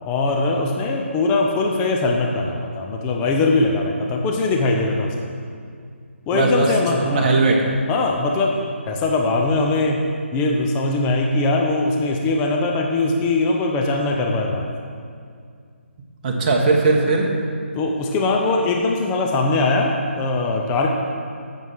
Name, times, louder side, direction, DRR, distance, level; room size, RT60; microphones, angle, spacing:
voice 1, 0.0-5.4 6.3-7.3 7.9-10.0 10.3-14.7 17.7-20.9, left 3 dB, 15° left, 0 dB, 0.7 m, -21 dB
voice 2, 6.3-7.6 16.2-17.3, right 3 dB, 35° right, 0 dB, 1.5 m, -19 dB
9.3 x 7.2 x 6.3 m, 2.2 s
figure-of-eight pair, 150°, 7 cm